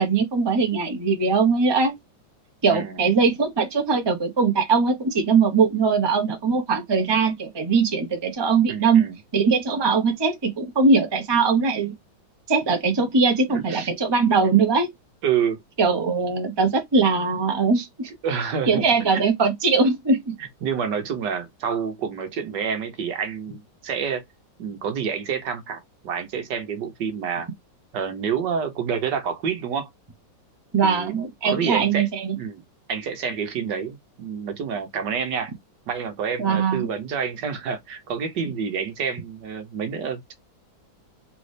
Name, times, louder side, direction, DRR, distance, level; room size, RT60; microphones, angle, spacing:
voice 1, 0.0-1.9 2.6-9.0 9.3-11.9 12.5-14.9 15.8-18.1 18.7-20.3 30.7-32.4 36.4-36.9, right 4 dB, 20° right, 0.8 m, -21 dB
voice 2, 2.7-3.0 8.7-9.2 13.5-13.9 15.2-15.6 18.1-19.3 20.4-24.2 24.6-27.5 27.9-29.9 30.8-32.1 32.3-32.6 32.9-35.5 35.9-40.3, right 7 dB, 70° right, 1.4 m, -28 dB
4.0 x 3.4 x 3.2 m
omnidirectional pair, 2.1 m